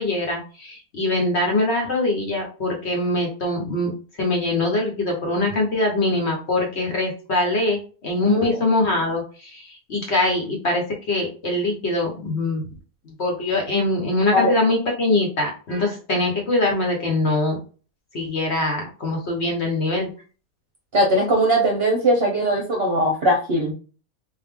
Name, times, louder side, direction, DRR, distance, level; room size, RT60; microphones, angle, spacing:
voice 1, 0.0-3.9 4.2-12.6 13.0-17.6 18.1-20.1, left 2 dB, 50° left, 0 dB, 1.2 m, -23 dB
voice 2, 8.3-8.6 14.3-14.5 20.9-23.7, equal, 50° right, 1 dB, 0.9 m, -20 dB
3.9 x 2.5 x 3.5 m, 0.37 s
omnidirectional pair, 1.7 m